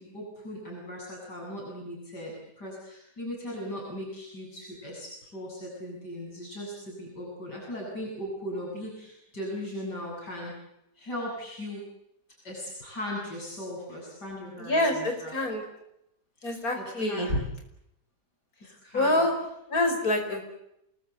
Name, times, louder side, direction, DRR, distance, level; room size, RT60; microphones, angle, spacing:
voice 1, 0.0-10.5 11.0-11.8 12.4-15.4 16.4-17.3 18.8-19.3, left 1 dB, 85° left, -2 dB, 8.4 m, -38 dB
voice 2, 14.6-15.6 16.4-17.4 18.9-19.3 19.7-20.4, left 1 dB, 60° left, 4 dB, 5.6 m, -26 dB
28.0 x 21.0 x 8.3 m, 0.80 s
omnidirectional pair, 1.8 m